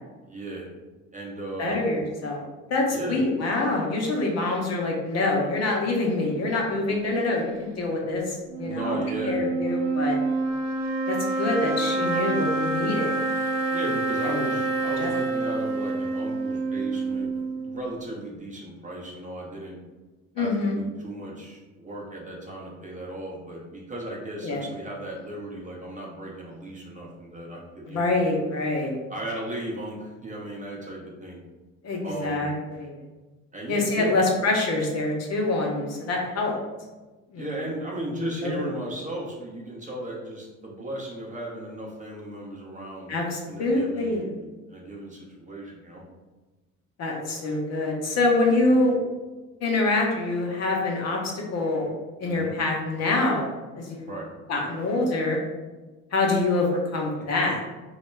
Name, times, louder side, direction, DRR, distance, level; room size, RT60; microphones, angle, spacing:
voice 1, 0.2-0.7 1.1-1.8 2.9-3.2 6.9-7.0 8.6-9.4 13.7-19.8 20.4-28.2 29.1-31.4 32.0-32.5 33.5-34.2 37.3-43.2 43.5-44.3 44.7-46.0 48.7-48.8 52.2-52.6 54.0-54.3, right 1 dB, 20° right, -3 dB, 0.6 m, -36 dB
voice 2, 1.6-2.4 2.7-9.0 9.2-10.2 11.1-13.2 14.2-14.4 15.0-15.1 20.4-20.8 24.4-24.6 27.9-29.0 31.8-33.0 33.7-36.6 37.3-37.5 38.2-38.5 43.1-44.3 47.0-49.0 49.6-51.9 52.2-54.1 54.5-55.4 56.1-57.6, left 2 dB, 40° left, -1 dB, 0.7 m, -25 dB
sound 1, 8.5-17.9, right 3 dB, 60° right, 0.5 m, -27 dB
2.2 x 2.1 x 3.2 m, 1.2 s
hypercardioid pair, 65°, 40 cm